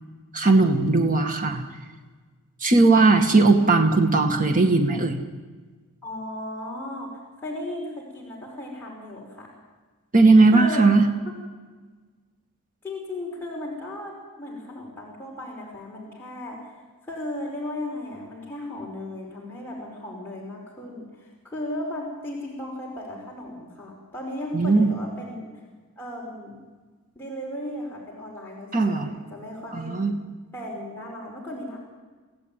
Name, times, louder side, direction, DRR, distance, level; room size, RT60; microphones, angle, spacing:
voice 1, 0.3-1.6 2.6-5.2 10.1-11.0 24.5-24.9 28.7-29.1 29.7-30.2, right 3 dB, 40° right, 4 dB, 2.1 m, -18 dB
voice 2, 6.0-9.5 10.5-10.9 11.2-11.3 12.8-16.7 17.0-25.5 26.0-26.6 27.2-30.0 30.5-31.8, left 1 dB, 10° left, -4 dB, 5.2 m, -36 dB
27.0 x 16.0 x 9.3 m, 1.4 s
head